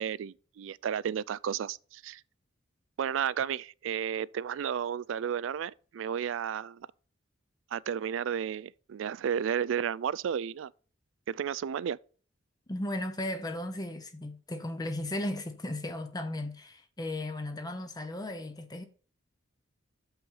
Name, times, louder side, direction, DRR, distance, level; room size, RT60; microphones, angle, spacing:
voice 1, 0.0-2.2 3.0-6.9 7.7-10.7 11.3-12.0, right 8 dB, 75° right, 0.3 m, -32 dB
voice 2, 12.7-18.8, left 1 dB, 20° left, 0.7 m, -36 dB
7.0 x 5.8 x 5.5 m
head